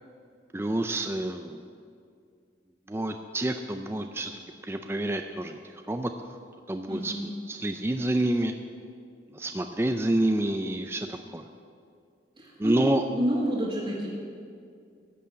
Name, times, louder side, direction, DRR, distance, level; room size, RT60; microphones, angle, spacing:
voice 1, 0.5-1.6 2.9-5.6 5.9-6.1 6.7-8.5 9.3-11.4 12.6-13.0, right 1 dB, 15° right, 6 dB, 0.4 m, -28 dB
voice 2, 12.4-12.7 13.1-14.1, equal, 30° right, -7 dB, 1.9 m, -29 dB
14.5 x 6.3 x 8.4 m, 2.3 s
head